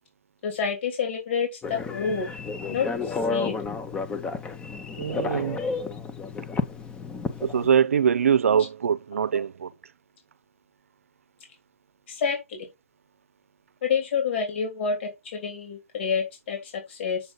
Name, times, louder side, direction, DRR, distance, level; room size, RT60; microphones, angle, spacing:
voice 1, 0.4-2.3 2.7-3.5 12.1-12.7 13.8-17.2, left 6 dB, 55° left, 3.0 m, -28 dB
Telephone, 1.6-7.7, left 4 dB, 10° left, 0.8 m, -31 dB
voice 2, 5.0-5.6 7.4-9.7, right 8 dB, 75° right, 0.5 m, -23 dB
7.0 x 5.2 x 3.9 m
hypercardioid pair, 135°, 8 cm